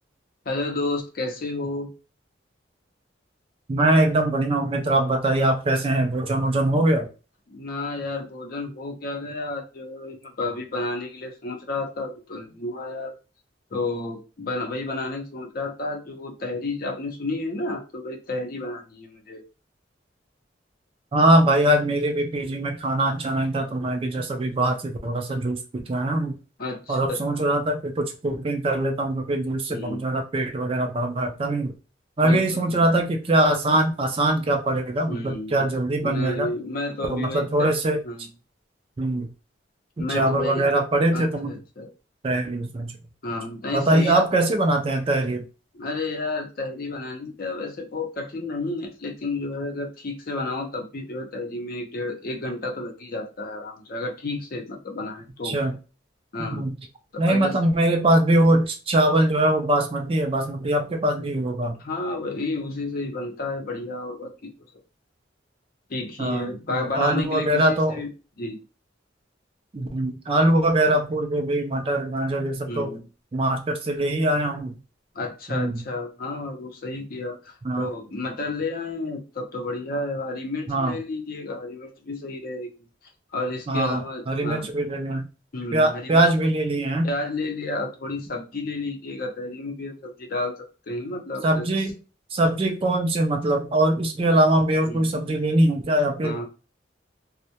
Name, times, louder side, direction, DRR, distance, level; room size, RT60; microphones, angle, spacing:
voice 1, 0.5-1.9 7.5-13.1 13.7-19.4 26.6-27.5 29.7-30.0 32.2-33.0 35.1-35.7 36.0-37.7 38.0-38.3 40.0-40.7 41.1-41.9 43.2-44.2 45.7-55.6 56.3-56.6 57.1-57.5 61.8-64.3 65.9-68.1 68.4-68.6 72.6-73.1 75.1-82.7 83.3-84.7 85.5-86.3 87.0-91.7 94.9-95.1 96.2-96.5, left 2 dB, 50° left, 0.5 m, -31 dB
voice 2, 3.7-7.1 21.1-26.3 26.9-31.7 32.2-36.5 37.1-38.0 39.0-39.3 40.0-41.6 42.2-42.9 43.7-45.4 55.4-55.8 56.4-56.7 57.2-61.8 66.2-68.0 69.7-72.9 73.3-74.7 75.5-75.8 77.6-77.9 80.7-80.9 83.7-85.2 85.7-87.1 91.4-91.9 92.3-96.5, right 1 dB, 30° right, 0.3 m, -22 dB
2.2 x 2.1 x 2.7 m
head